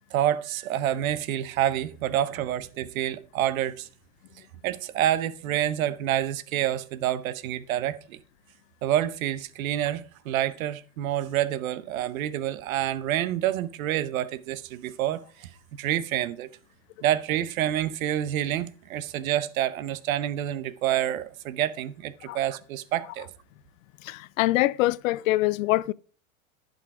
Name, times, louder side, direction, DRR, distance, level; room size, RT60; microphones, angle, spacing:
voice 1, 0.1-3.9 4.6-8.2 8.8-16.5 17.0-23.3, right 12 dB, 75° right, 0.9 m, -28 dB
voice 2, 24.0-25.9, left 18 dB, 70° left, 0.5 m, -24 dB
11.0 x 5.2 x 4.8 m
hypercardioid pair, 120°, 42 cm